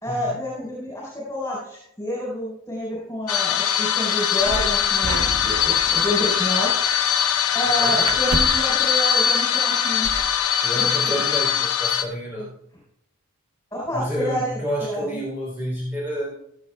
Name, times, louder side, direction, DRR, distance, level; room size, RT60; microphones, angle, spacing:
voice 1, 0.0-6.8 7.5-10.1 10.7-11.1 13.7-15.2, left 1 dB, 15° left, -7 dB, 4.5 m, -29 dB
sound 1, 3.3-12.0, left 8 dB, 80° left, 0.9 m, -21 dB
sound 2, 4.4-5.7 6.0-6.2 8.0-8.7 10.0-10.4 11.5-11.6 12.0-12.5, right 2 dB, 70° right, 0.9 m, -31 dB
sound 3, 5.0-7.4, right 2 dB, 85° right, 1.2 m, -34 dB
voice 2, 10.6-12.5 13.9-16.3, equal, 10° right, -5 dB, 3.5 m, -29 dB
15.5 x 14.5 x 2.4 m, 0.77 s
head